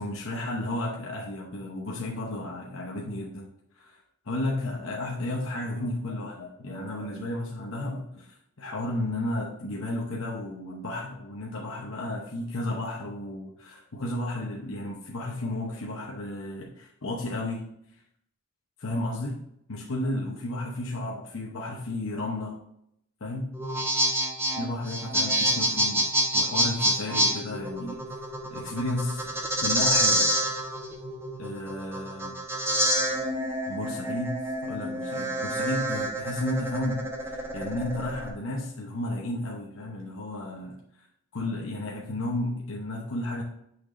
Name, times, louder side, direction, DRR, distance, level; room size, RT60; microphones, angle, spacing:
voice 1, 0.0-17.7 18.8-19.4 19.7-22.6 23.2-23.6 24.6-26.1 26.3-28.0 28.5-29.3 29.6-30.3 31.4-32.4 33.7-40.8 41.3-43.4, left 1 dB, 60° left, -1 dB, 0.9 m, -33 dB
sound 1, 23.5-38.3, right 1 dB, 10° right, 1.0 m, -27 dB
9.5 x 6.1 x 2.6 m, 0.75 s
head